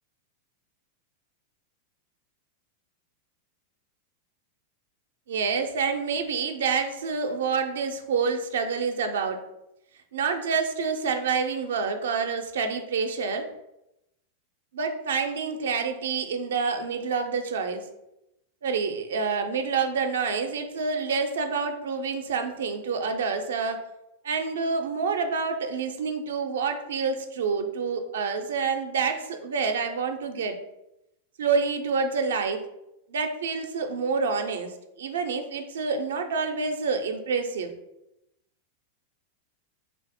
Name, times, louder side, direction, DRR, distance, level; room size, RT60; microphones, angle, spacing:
voice 1, 5.3-9.4 10.1-13.5 14.7-17.9 18.6-23.8 24.2-30.6 31.4-32.6 33.1-37.7, right 5 dB, 65° right, 6 dB, 0.4 m, -28 dB
3.4 x 2.5 x 4.0 m, 0.87 s
figure-of-eight pair, 90°, 0 cm